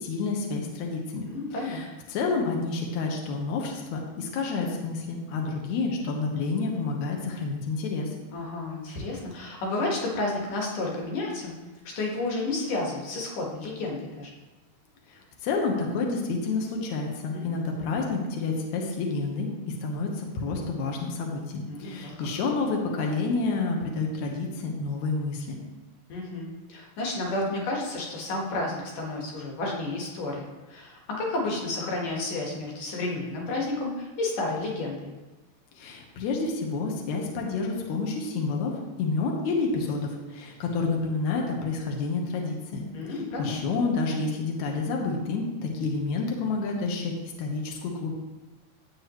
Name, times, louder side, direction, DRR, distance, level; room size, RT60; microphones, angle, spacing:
voice 1, 0.0-1.3 1.6-8.1 15.1-19.5 19.8-25.6 35.7-38.7 39.0-42.8 43.4-47.1 47.4-48.1, left 3 dB, 80° left, 0 dB, 1.7 m, -29 dB
voice 2, 1.2-1.8 8.3-11.5 12.0-14.3 17.3-17.6 21.7-22.1 26.1-35.1 42.9-43.6, left 2 dB, 60° left, -2 dB, 2.7 m, -31 dB
11.5 x 8.1 x 3.1 m, 1.2 s
omnidirectional pair, 4.9 m